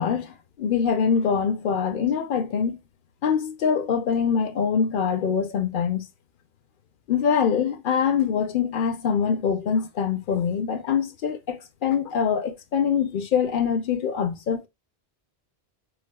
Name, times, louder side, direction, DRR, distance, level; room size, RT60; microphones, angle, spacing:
voice 1, 0.0-2.8 3.2-6.1 7.1-14.7, left 7 dB, 60° left, 0.7 m, -24 dB
4.6 x 2.1 x 2.2 m
omnidirectional pair, 1.0 m